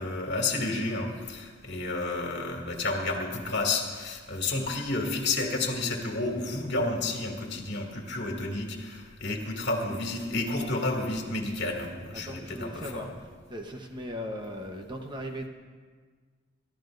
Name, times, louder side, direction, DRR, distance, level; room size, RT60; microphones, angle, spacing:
voice 1, 0.0-13.1, left 2 dB, 60° left, 0 dB, 2.5 m, -31 dB
voice 2, 12.1-15.5, equal, 25° right, 3 dB, 1.0 m, -38 dB
29.5 x 13.0 x 2.6 m, 1.6 s
head